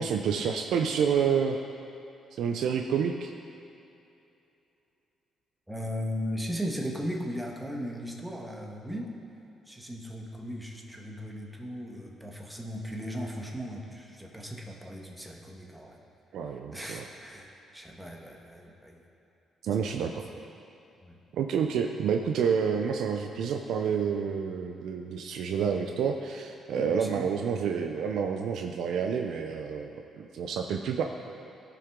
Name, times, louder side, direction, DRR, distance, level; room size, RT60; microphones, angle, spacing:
voice 1, 0.0-1.6 2.4-3.3 16.3-17.1 19.6-20.3 21.3-31.0, right 7 dB, 75° right, 4 dB, 0.5 m, -29 dB
voice 2, 5.7-9.1 9.7-16.0 16.7-19.0 21.0-21.2 26.7-27.3, equal, 5° right, 0 dB, 1.4 m, -37 dB
16.5 x 5.8 x 3.7 m, 2.7 s
cardioid pair, 90°, 0 cm